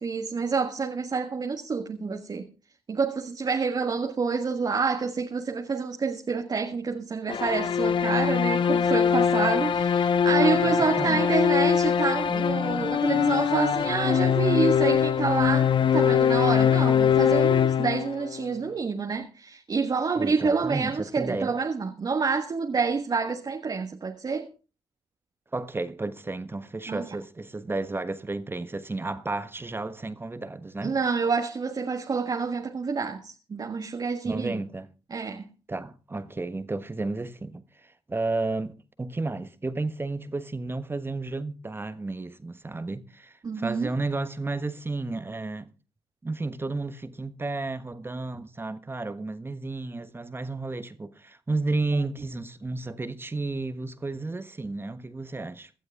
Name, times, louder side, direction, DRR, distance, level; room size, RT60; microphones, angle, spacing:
voice 1, 0.0-2.5 2.9-24.5 26.9-27.1 30.8-34.6 35.1-35.5 43.4-43.9, right 5 dB, 40° right, 1.6 m, -28 dB
sound 1, 7.3-18.4, left 8 dB, 55° left, 0.7 m, -22 dB
voice 2, 10.6-11.2 20.1-21.5 25.5-30.9 34.2-34.9 35.7-38.7 39.0-45.7 46.2-55.7, right 3 dB, 20° right, 1.3 m, -32 dB
18.0 x 12.0 x 3.6 m
supercardioid pair, 60°, 10 cm